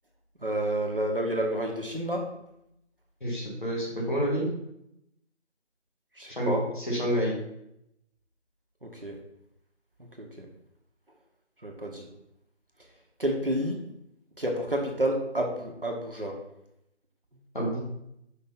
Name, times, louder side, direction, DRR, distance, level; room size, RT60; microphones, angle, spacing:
voice 1, 0.4-2.3 6.2-6.7 8.8-9.2 10.0-10.5 11.6-12.1 13.2-13.8 14.4-16.4, right 1 dB, 50° right, 1 dB, 1.2 m, -30 dB
voice 2, 3.2-4.5 6.3-7.4 17.5-17.8, equal, 45° left, -3 dB, 2.3 m, -28 dB
5.6 x 5.6 x 4.1 m, 0.80 s
figure-of-eight pair, 170°, 35 cm